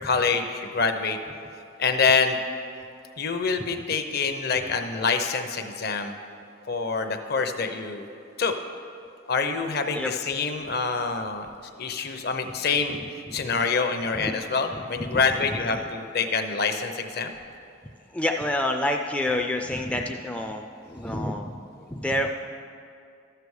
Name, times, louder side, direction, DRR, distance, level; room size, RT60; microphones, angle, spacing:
voice 1, 0.0-1.2 1.8-2.4 3.2-6.2 6.7-8.1 8.4-8.5 9.3-11.5 11.8-13.0 13.3-17.3, left 4 dB, 55° left, 7 dB, 0.7 m, -26 dB
voice 2, 14.7-15.6 18.1-21.5 21.8-22.3, left 1 dB, 5° left, 2 dB, 0.3 m, -28 dB
13.0 x 6.8 x 4.8 m, 2.4 s
head